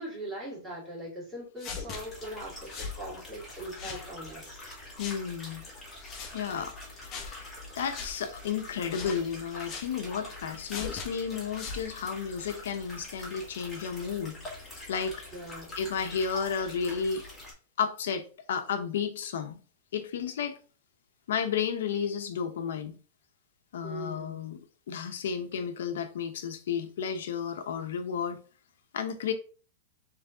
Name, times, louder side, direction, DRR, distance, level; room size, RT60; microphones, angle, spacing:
voice 1, 0.0-4.6 15.3-15.7 23.8-24.4, right 1 dB, 15° right, 2.1 m, -41 dB
sound 1, 1.6-2.0 2.7-3.0 3.7-4.1 5.0-5.2 6.0-6.3 7.1-7.3 7.9-8.1 8.9-9.2 9.7-9.9 10.7-11.1 11.5-11.8, left 5 dB, 30° left, 0.9 m, -39 dB
sound 2, 1.9-17.5, left 2 dB, 15° left, 1.8 m, -45 dB
voice 2, 5.0-5.6 6.3-14.4 14.9-15.2 15.7-17.2 17.8-19.6 19.9-20.6 21.3-23.0 23.7-28.4 28.9-29.3, left 7 dB, 75° left, 0.8 m, -32 dB
3.5 x 3.3 x 3.8 m
supercardioid pair, 155°, 0 cm